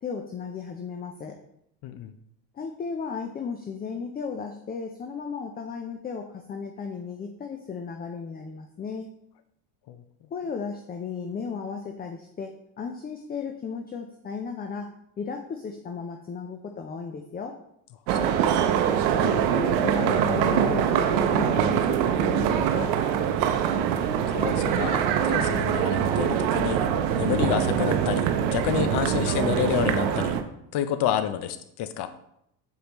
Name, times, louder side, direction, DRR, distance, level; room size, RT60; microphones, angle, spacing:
voice 1, 0.0-1.4 2.5-9.1 10.3-14.9 15.2-17.5 19.1-23.0, left 5 dB, 20° left, 5 dB, 0.5 m, -35 dB
voice 2, 1.8-2.1 9.9-10.0 18.1-18.3 23.9-26.9 27.1-30.4 30.7-32.1, left 10 dB, 55° left, 11 dB, 0.8 m, -29 dB
sound 1, 18.1-30.4, right 9 dB, 90° right, 0.7 m, -24 dB
6.6 x 5.1 x 3.0 m, 0.75 s
supercardioid pair, 90°, 50 cm